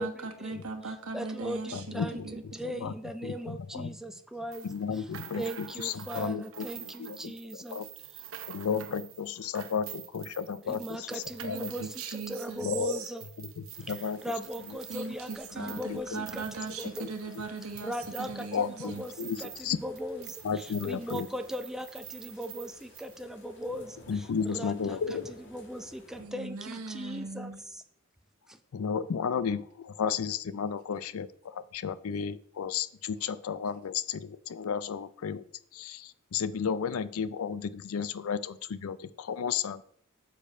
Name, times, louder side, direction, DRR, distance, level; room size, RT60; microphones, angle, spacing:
voice 1, 0.0-1.8 2.2-2.4 11.4-13.0 14.9-19.0 26.2-27.6, right 4 dB, 85° right, 4 dB, 1.2 m, -39 dB
voice 2, 1.1-2.2 2.5-4.7 5.4-7.8 10.7-13.2 14.2-17.1 17.8-18.5 18.8-19.5 19.8-20.4 20.8-24.0 24.5-24.7 25.5-27.5 28.5-28.6, equal, ahead, 7 dB, 0.5 m, -38 dB
voice 3, 1.7-2.9 3.2-4.0 4.6-7.9 8.5-11.9 12.6-13.0 13.4-14.2 14.6-14.8 15.6-16.2 16.8-17.1 18.5-19.8 20.4-21.3 24.1-25.3 28.7-35.5 35.7-39.8, left 6 dB, 75° left, 16 dB, 0.4 m, -33 dB
sound 1, 4.5-19.7 20.0-23.2, right 12 dB, 65° right, 0.7 m, -47 dB
sound 2, 13.7-26.2, left 1 dB, 60° left, 1.6 m, -56 dB
6.8 x 5.0 x 5.3 m, 0.64 s
head